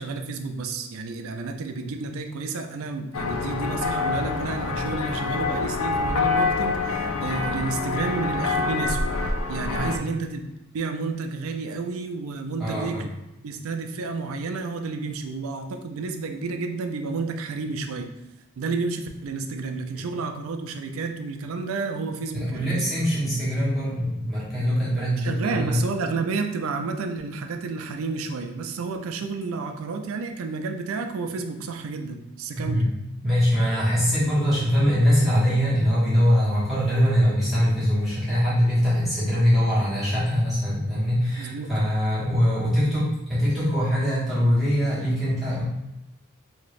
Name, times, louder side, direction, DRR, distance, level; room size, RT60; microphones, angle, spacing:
voice 1, 0.0-9.0 9.5-10.4 10.7-13.1 13.4-18.1 18.6-22.8 25.2-32.8 41.4-41.7, right 4 dB, 75° right, 5 dB, 0.4 m, -30 dB
sound 1, 3.1-10.0, left 4 dB, 85° left, 0.4 m, -26 dB
voice 2, 12.6-13.0 19.9-20.0 22.3-25.8 32.5-32.8 33.2-45.6, equal, ahead, -12 dB, 1.1 m, -22 dB
2.8 x 2.5 x 3.1 m, 0.95 s
head